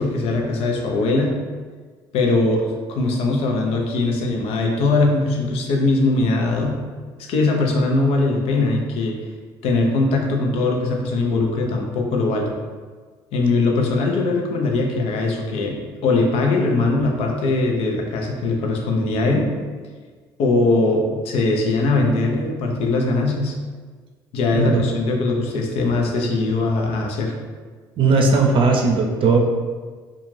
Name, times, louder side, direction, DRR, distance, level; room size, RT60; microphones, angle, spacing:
voice 1, 0.0-1.3 2.1-6.8 7.2-9.2 9.6-12.5 13.3-19.5 20.4-23.5 24.3-27.3, left 3 dB, 65° left, 1 dB, 0.6 m, -21 dB
voice 2, 28.0-29.4, right 4 dB, 50° right, 1 dB, 0.5 m, -17 dB
2.4 x 2.3 x 3.1 m, 1.5 s
hypercardioid pair, 65°, 11 cm